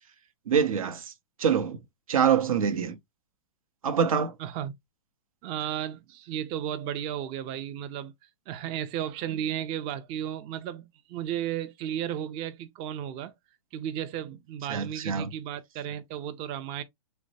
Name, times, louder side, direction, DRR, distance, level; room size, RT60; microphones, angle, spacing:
voice 1, 0.5-1.1 1.4-1.8 2.1-3.0 3.8-4.3 14.7-15.3, right 7 dB, 85° right, 0.6 m, -25 dB
voice 2, 4.4-4.7 5.4-8.1 8.5-13.3 13.7-16.8, right 10 dB, 30° right, 0.4 m, -34 dB
3.1 x 2.0 x 2.6 m
hypercardioid pair, 125°, 17 cm